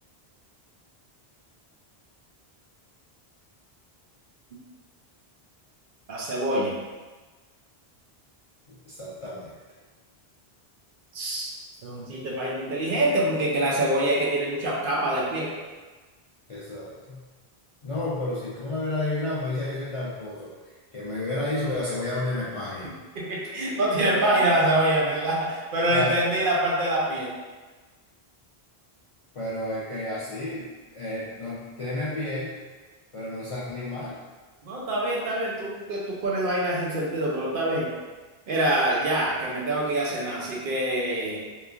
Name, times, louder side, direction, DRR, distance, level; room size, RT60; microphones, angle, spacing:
voice 1, 6.1-6.7 11.1-11.5 11.8-15.5 23.2-27.3 34.7-37.9 38.5-41.4, right 1 dB, 65° right, -4 dB, 0.7 m, -25 dB
voice 2, 8.7-9.5 16.5-17.3 17.8-22.9 25.9-26.1 29.3-32.6 33.1-34.2, left 2 dB, 50° left, -9 dB, 0.4 m, -31 dB
3.0 x 2.3 x 2.3 m, 1.3 s
omnidirectional pair, 1.0 m